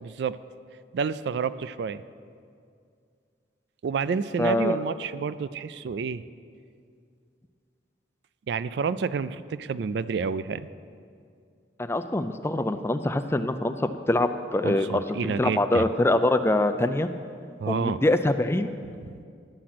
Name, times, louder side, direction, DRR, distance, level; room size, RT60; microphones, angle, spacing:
voice 1, 0.0-0.4 0.9-2.0 3.8-6.2 8.5-10.7 14.6-15.8 17.6-18.0 19.0-19.1, right 5 dB, 65° right, 15 dB, 0.3 m, -29 dB
voice 2, 4.4-4.8 11.8-17.1 17.7-18.7, left 1 dB, 15° left, 9 dB, 0.3 m, -24 dB
11.5 x 7.5 x 5.9 m, 2.3 s
head